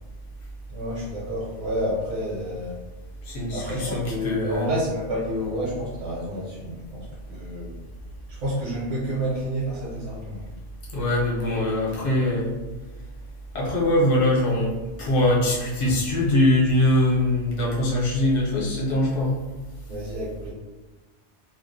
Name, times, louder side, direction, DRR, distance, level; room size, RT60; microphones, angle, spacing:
voice 1, 0.7-2.8 3.5-7.7 8.3-10.5 19.9-20.5, equal, 75° right, -6 dB, 0.9 m, -29 dB
voice 2, 3.3-4.7 10.9-12.6 13.5-19.4, left 1 dB, 55° left, -5 dB, 0.8 m, -22 dB
2.3 x 2.0 x 2.6 m, 1.2 s
omnidirectional pair, 1.3 m